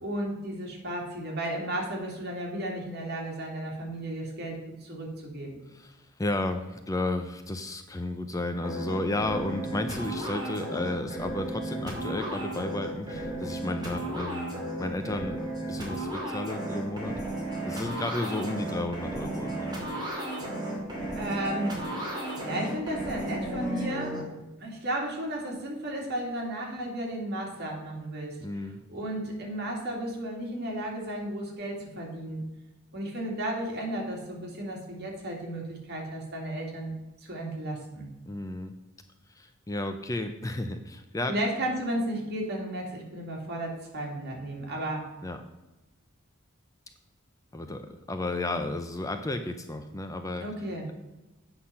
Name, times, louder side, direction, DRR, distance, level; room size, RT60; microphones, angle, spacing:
voice 1, 0.0-5.6 21.1-21.8 22.4-24.2 24.6-28.4 28.9-32.4 32.9-36.9 37.2-38.1 41.3-45.0 50.4-50.9, right 1 dB, 50° right, -1 dB, 2.5 m, -34 dB
voice 2, 5.7-14.5 14.8-17.2 17.6-19.7 28.4-28.8 38.3-38.7 39.3-41.3 45.2-45.4 47.5-50.4, left 2 dB, 15° left, 7 dB, 0.5 m, -33 dB
sound 1, 8.6-24.2, right 1 dB, 20° right, 2.3 m, -34 dB
8.5 x 5.7 x 5.7 m, 1.1 s
head